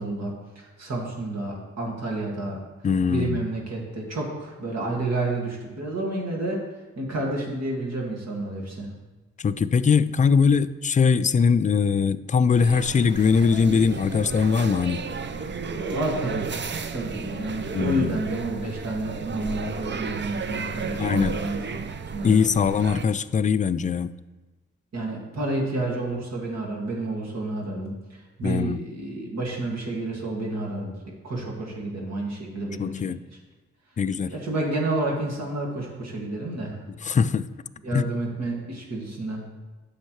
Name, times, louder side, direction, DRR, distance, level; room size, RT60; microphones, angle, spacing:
voice 1, 0.0-2.6 3.1-6.6 7.0-8.9 15.6-16.5 16.9-22.4 24.9-30.9 31.2-33.1 34.3-36.8 37.8-39.4, right 2 dB, 60° right, -2 dB, 2.1 m, -30 dB
voice 2, 2.8-3.4 9.4-15.0 17.7-18.2 21.0-21.4 22.2-24.1 28.4-28.8 32.8-33.2 34.0-34.3 37.0-37.5 37.9-38.1, left 6 dB, 25° left, 13 dB, 0.3 m, -21 dB
sound 1, 12.6-23.1, right 5 dB, 40° right, 0.5 m, -33 dB
9.4 x 6.5 x 3.2 m, 1.2 s
cardioid pair, 60°, 30 cm